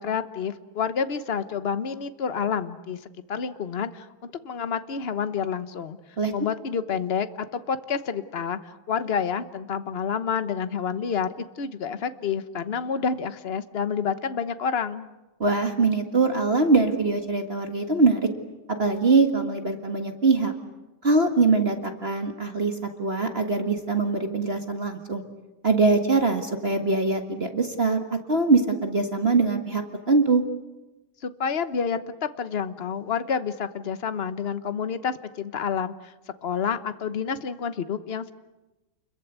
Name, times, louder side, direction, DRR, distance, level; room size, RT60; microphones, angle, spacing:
voice 1, 0.0-3.0 3.3-6.0 6.3-15.1 31.2-36.1 36.4-38.3, left 6 dB, 40° left, 11 dB, 1.0 m, -29 dB
voice 2, 15.4-18.3 18.8-20.5 21.0-25.2 25.6-30.4, right 3 dB, 30° right, 5 dB, 1.8 m, -23 dB
29.5 x 22.5 x 8.2 m, 1.1 s
omnidirectional pair, 2.2 m